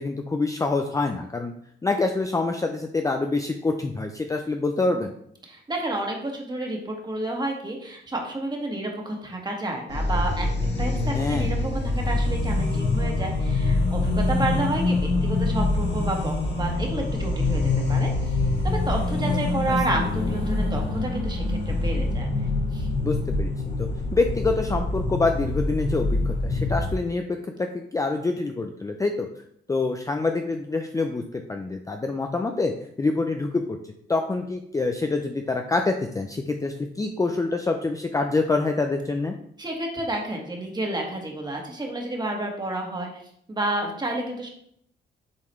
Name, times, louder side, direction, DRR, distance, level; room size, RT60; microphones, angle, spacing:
voice 1, 0.0-1.5 1.8-5.1 11.1-11.5 19.7-19.8 20.2-20.4 23.0-23.5 23.8-27.2 27.6-29.3 29.7-32.7 33.0-33.8 34.1-39.3, left 3 dB, 15° left, 4 dB, 0.5 m, -26 dB
voice 2, 5.5-10.5 10.8-17.6 17.9-22.3 22.7-22.9 39.6-43.2 43.5-44.5, right 2 dB, 20° right, 1 dB, 1.6 m, -30 dB
sound 1, 9.9-26.9, left 2 dB, 60° left, 2.0 m, -25 dB
7.7 x 3.9 x 3.1 m, 0.69 s
cardioid pair, 90°, 20 cm